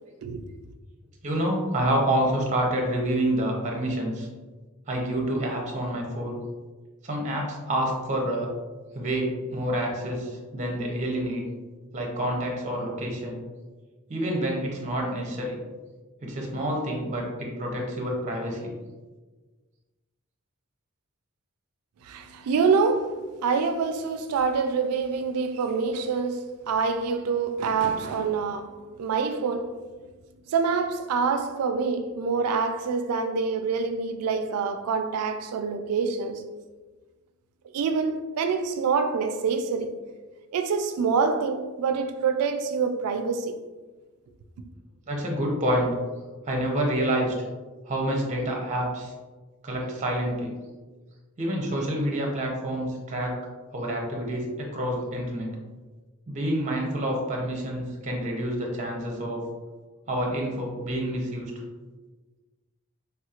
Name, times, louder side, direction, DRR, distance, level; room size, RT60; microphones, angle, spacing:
voice 1, 1.2-4.3 4.9-6.4 7.0-8.5 8.9-11.4 11.9-13.4 14.1-15.6 16.2-18.7 45.1-45.9 46.4-47.3 47.8-49.1 49.6-50.5 51.4-53.4 53.7-55.5 56.3-59.4 60.1-61.5, right 1 dB, 35° right, 0.6 m, -28 dB
voice 2, 22.0-29.7 30.5-36.4 37.7-40.0 40.5-43.5, right 5 dB, 80° right, 0.3 m, -26 dB
3.4 x 2.9 x 2.4 m
head